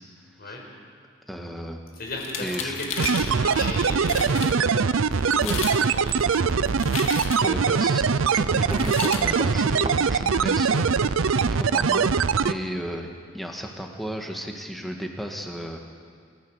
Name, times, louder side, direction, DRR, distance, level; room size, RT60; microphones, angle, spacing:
voice 1, 1.3-1.8 2.4-2.8 5.4-5.6 7.4-12.1 12.4-13.1 13.3-15.8, equal, ahead, 2 dB, 1.9 m, -34 dB
voice 2, 1.9-7.0, left 1 dB, 50° left, 0 dB, 5.4 m, -36 dB
sound 1, 2.1-3.3 3.8-3.9 4.1-4.5 5.3-5.8 6.1-7.6 8.7-9.2, left 6 dB, 85° left, 2.2 m, -33 dB
sound 2, 3.0-12.5, right 5 dB, 85° right, 0.6 m, -22 dB
Water, 8.4-11.6, right 3 dB, 30° right, 1.1 m, -38 dB
29.0 x 14.5 x 6.6 m, 2.1 s
head